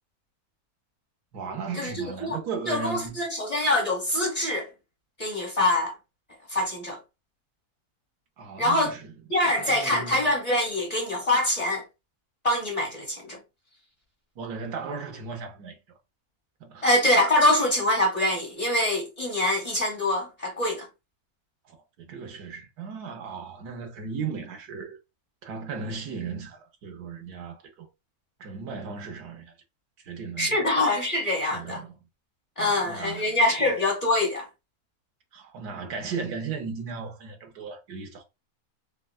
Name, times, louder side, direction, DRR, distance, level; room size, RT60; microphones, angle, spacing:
voice 1, 1.3-3.1 8.4-9.1 9.6-10.4 14.4-15.8 16.6-16.9 21.7-25.0 25.4-27.9 28.4-29.5 30.0-30.7 31.4-31.9 32.6-33.7 35.3-38.2, right 5 dB, 85° right, 1.4 m, -36 dB
voice 2, 2.7-4.7 5.2-5.9 6.5-7.0 8.6-8.9 9.3-11.8 12.4-13.4 16.8-20.9 30.4-31.8 32.6-34.5, left 1 dB, 25° left, 1.3 m, -24 dB
4.5 x 2.2 x 2.3 m
omnidirectional pair, 1.6 m